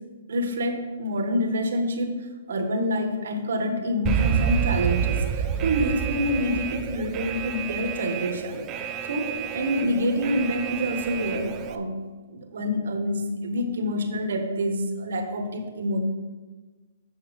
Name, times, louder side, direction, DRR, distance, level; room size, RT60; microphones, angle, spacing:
voice 1, 0.3-2.1 2.5-8.6 9.1-12.0 12.3-16.0, equal, 75° right, 5 dB, 1.3 m, -27 dB
Alarm, 4.1-11.8, right 8 dB, 25° right, 0.5 m, -28 dB
8.4 x 5.8 x 5.1 m, 1.3 s
hypercardioid pair, 145°, 0 cm